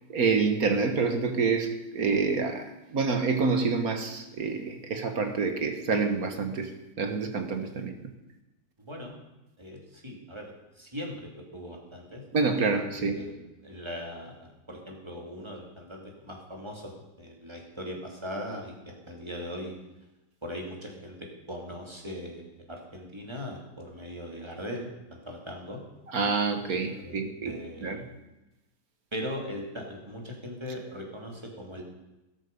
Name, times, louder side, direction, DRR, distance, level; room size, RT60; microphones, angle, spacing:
voice 1, 0.1-6.7 7.0-8.0 12.3-13.2 26.1-27.5 27.8-28.0, right 4 dB, 55° right, 6 dB, 1.7 m, -27 dB
voice 2, 8.8-9.1 9.6-10.4 10.8-12.2 12.9-13.3 13.6-19.7 20.4-25.8 27.0-27.2 27.4-28.0 29.1-31.8, equal, 15° right, 0 dB, 2.7 m, -39 dB
13.5 x 13.0 x 5.4 m, 0.99 s
omnidirectional pair, 2.0 m